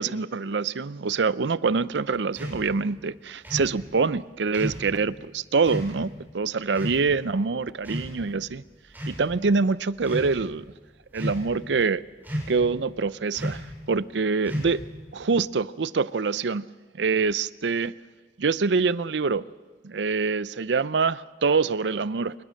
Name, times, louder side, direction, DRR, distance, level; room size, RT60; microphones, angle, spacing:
voice 1, 0.0-8.6 9.1-10.6 11.1-12.0 12.5-14.8 15.1-16.7 16.9-17.9 18.4-19.4 19.8-22.3, right 4 dB, 90° right, 0.6 m, -25 dB
sound 1, 2.3-2.6 3.4-3.7 4.5-4.9 5.6-5.9 6.7-7.0 7.8-8.4 8.9-9.2 9.9-10.3 11.1-11.6 12.2-12.6 13.3-13.7 14.4-14.9, equal, 10° right, 7.1 m, -32 dB
26.0 x 22.0 x 6.5 m
head